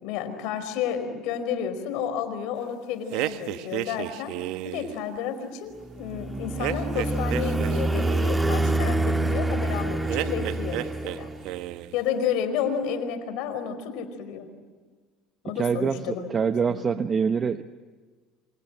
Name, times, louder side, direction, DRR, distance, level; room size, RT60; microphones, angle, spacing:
voice 1, 0.0-4.3 4.6-11.3 11.9-14.5 15.4-17.0, left 8 dB, 70° left, 9 dB, 4.7 m, -31 dB
sound 1, 3.1-5.0 6.6-8.4 10.1-11.2 11.4-12.0, right 15 dB, 70° right, 1.2 m, -32 dB
sound 2, 5.9-11.6, right 2 dB, 10° right, 1.6 m, -26 dB
voice 2, 15.5-17.6, right 6 dB, 35° right, 10 dB, 1.0 m, -25 dB
29.0 x 26.0 x 7.6 m, 1.4 s
hypercardioid pair, 80°, 0 cm